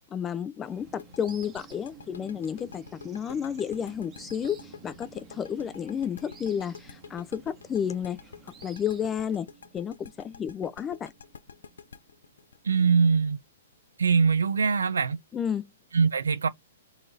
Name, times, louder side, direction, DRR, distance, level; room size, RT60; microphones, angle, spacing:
voice 1, 0.1-8.2 8.6-9.5 9.7-11.1 15.3-15.6, left 8 dB, 20° left, 0.5 m, -31 dB
sound 1, 0.6-9.4, right 5 dB, 25° right, 1.1 m, -54 dB
sound 2, 0.7-12.9, right 5 dB, 45° right, 1.3 m, -54 dB
sound 3, 1.0-13.7, left 6 dB, 70° left, 0.5 m, -47 dB
voice 2, 12.6-13.4 14.0-15.2 15.9-16.5, right 5 dB, 75° right, 0.6 m, -22 dB
3.9 x 3.1 x 2.5 m
figure-of-eight pair, 115°, 0 cm